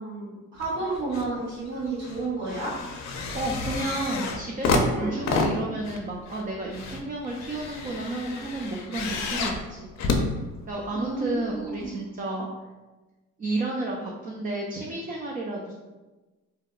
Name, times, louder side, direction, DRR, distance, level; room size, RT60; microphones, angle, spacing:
voice 1, 0.0-2.7 4.9-5.1 10.9-11.2 11.5-11.9, right 3 dB, 60° right, -10 dB, 1.3 m, -31 dB
sound 1, 0.6-1.3 1.7-11.0 11.8-11.9, left 3 dB, 65° left, 0.5 m, -30 dB
voice 2, 3.3-9.9 10.7-12.5 13.4-15.7, right 2 dB, 30° right, -2 dB, 0.4 m, -31 dB
2.7 x 2.1 x 3.8 m, 1.2 s
cardioid pair, 90°, 30 cm